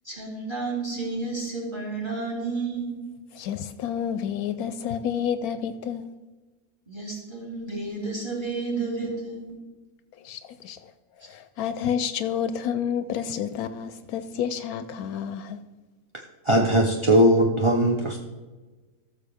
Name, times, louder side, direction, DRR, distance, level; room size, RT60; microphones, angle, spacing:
voice 1, 0.1-3.0 6.9-9.5, right 3 dB, 15° right, -1 dB, 2.8 m, -31 dB
voice 2, 3.3-6.1 10.2-10.9 11.3-15.6, left 8 dB, 75° left, 11 dB, 1.0 m, -30 dB
voice 3, 16.5-18.2, right 1 dB, 35° right, 1 dB, 0.5 m, -19 dB
14.5 x 6.8 x 3.5 m, 1.3 s
omnidirectional pair, 1.6 m